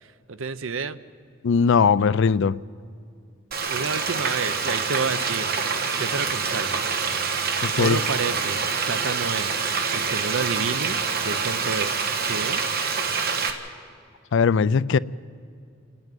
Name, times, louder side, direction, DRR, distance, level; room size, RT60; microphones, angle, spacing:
voice 1, 0.0-1.0 3.7-5.5 6.0-6.9 7.8-9.6 9.9-12.6, right 4 dB, 65° right, 0.8 m, -30 dB
voice 2, 1.4-2.6 7.6-8.0 14.3-15.0, left 5 dB, 60° left, 0.4 m, -19 dB
Frying (food), 3.5-13.5, right 5 dB, 45° right, 1.4 m, -26 dB
29.0 x 9.7 x 9.1 m
head